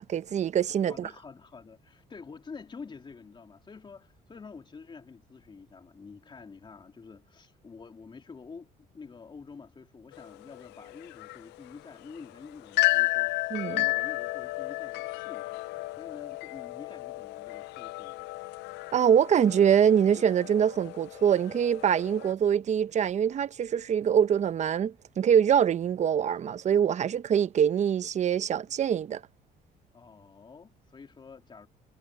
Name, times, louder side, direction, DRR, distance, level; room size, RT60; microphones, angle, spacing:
voice 1, 0.0-1.1 13.5-13.8 18.9-29.2, right 8 dB, 45° right, 0.8 m, -24 dB
voice 2, 0.8-15.6 15.9-18.4 29.9-31.7, left 5 dB, 30° left, 3.3 m, -48 dB
sound 1, 10.1-22.3, left 21 dB, 85° left, 0.5 m, -33 dB
cardioid pair, 110°, 17 cm